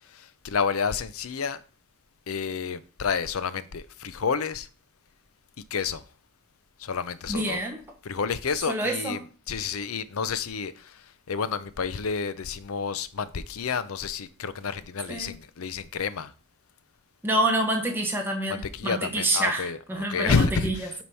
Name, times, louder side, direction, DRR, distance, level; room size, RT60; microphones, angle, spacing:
voice 1, 0.4-1.6 2.3-4.7 5.7-6.0 6.8-7.6 8.0-9.2 9.5-10.7 11.3-16.3 18.5-20.9, left 5 dB, 85° left, 0.6 m, -29 dB
voice 2, 7.3-7.8 8.7-9.2 15.1-15.3 17.2-20.7, right 1 dB, 10° right, 1.2 m, -27 dB
8.4 x 3.1 x 5.5 m
head